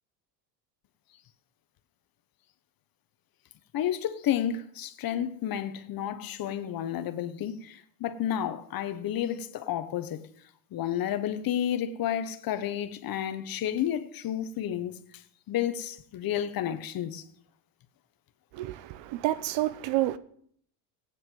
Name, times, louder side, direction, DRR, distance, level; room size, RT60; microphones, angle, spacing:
voice 1, 3.7-10.3 10.7-15.2 15.5-17.2, left 10 dB, 45° left, 1.1 m, -31 dB
voice 2, 18.5-20.2, right 15 dB, 60° right, 0.9 m, -29 dB
15.0 x 9.6 x 5.4 m
cardioid pair, 125°, 48 cm